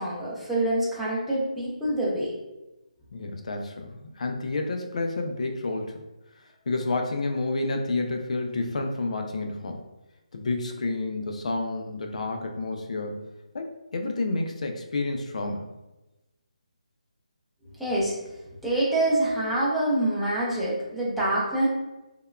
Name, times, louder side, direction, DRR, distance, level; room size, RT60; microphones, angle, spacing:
voice 1, 0.0-2.3 17.8-18.1 18.6-21.7, right 1 dB, ahead, -8 dB, 0.5 m, -26 dB
voice 2, 3.1-6.0 6.7-9.8 10.3-13.3 13.5-15.7, left 2 dB, 60° left, 3 dB, 0.3 m, -30 dB
3.3 x 2.2 x 2.2 m, 1.0 s
figure-of-eight pair, 155°, 4 cm